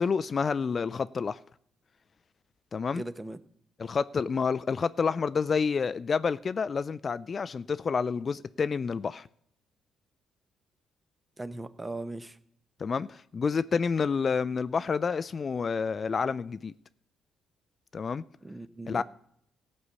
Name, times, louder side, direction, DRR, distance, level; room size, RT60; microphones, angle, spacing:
voice 1, 0.0-1.4 2.7-3.0 3.8-9.3 12.8-16.7 17.9-18.2 18.9-19.0, left 5 dB, 40° left, 0.4 m, -29 dB
voice 2, 2.9-3.4 11.4-12.4 18.4-19.0, right 2 dB, 15° right, 0.9 m, -38 dB
15.0 x 5.4 x 8.2 m
cardioid pair, 90°, 0 cm